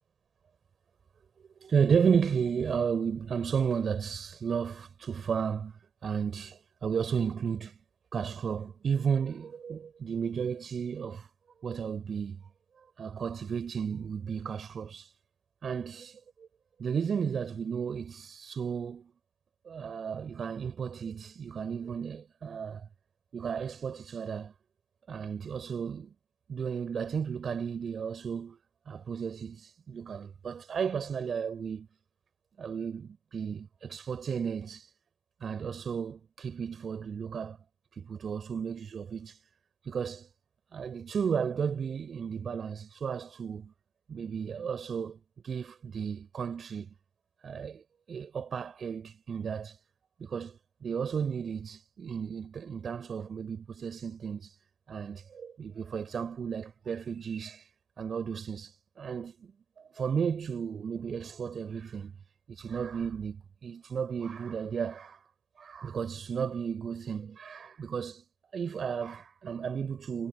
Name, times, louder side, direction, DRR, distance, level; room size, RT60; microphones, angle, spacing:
voice 1, 1.6-7.8 8.1-11.3 11.6-12.4 13.0-15.1 15.6-16.2 16.8-19.1 19.7-22.9 23.3-24.5 25.1-26.1 26.5-28.6 28.9-31.9 32.6-34.9 35.4-37.6 37.9-39.4 39.8-40.3 40.7-43.7 44.1-46.9 47.4-49.8 50.2-54.6 54.9-57.7 58.0-59.5 59.9-62.1 62.5-65.2 65.6-68.2 68.5-70.3, right 7 dB, 35° right, 6.4 m, -33 dB
hypercardioid pair, 75°, 0 cm